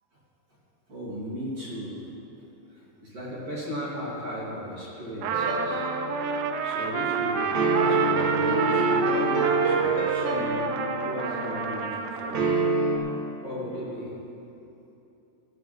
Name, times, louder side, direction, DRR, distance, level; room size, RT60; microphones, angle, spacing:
voice 1, 0.9-2.0 2.8-5.8 6.6-7.5 7.7-10.8 11.0-12.5 13.4-14.1, equal, 40° right, -8 dB, 3.7 m, -35 dB
Trumpet, 5.2-12.4, right 6 dB, 80° right, 1.8 m, -29 dB
sound 1, 5.3-6.7 7.5-11.5 12.3-13.0, right 3 dB, 65° right, 2.0 m, -26 dB
18.0 x 13.5 x 3.5 m, 2.9 s
omnidirectional pair, 4.4 m